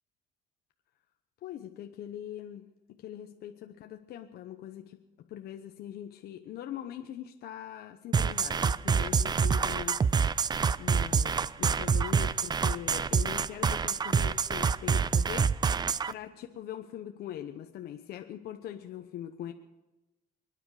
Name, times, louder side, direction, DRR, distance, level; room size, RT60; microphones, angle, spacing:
voice 1, 1.4-2.7 3.0-10.0 10.4-15.5 16.1-19.5, left 11 dB, 70° left, 5 dB, 1.0 m, -42 dB
sound 1, 8.1-16.1, right 6 dB, 25° right, 0.4 m, -26 dB
24.5 x 10.0 x 4.9 m, 1.0 s
cardioid pair, 110°, 17 cm